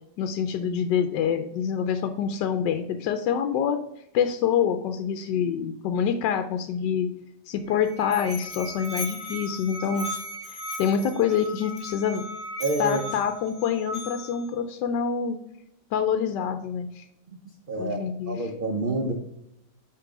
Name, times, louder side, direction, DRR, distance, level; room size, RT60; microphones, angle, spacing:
voice 1, 0.2-3.8 4.1-7.1 7.5-10.1 10.4-12.2 12.8-15.4 15.9-17.0 17.8-18.5, left 7 dB, 75° left, 8 dB, 1.2 m, -26 dB
Musical instrument, 7.5-14.5, equal, 5° right, 1.0 m, -37 dB
voice 2, 12.6-13.0 17.7-19.1, right 2 dB, 85° right, 3 dB, 0.4 m, -28 dB
8.3 x 3.1 x 4.8 m, 0.78 s
omnidirectional pair, 2.0 m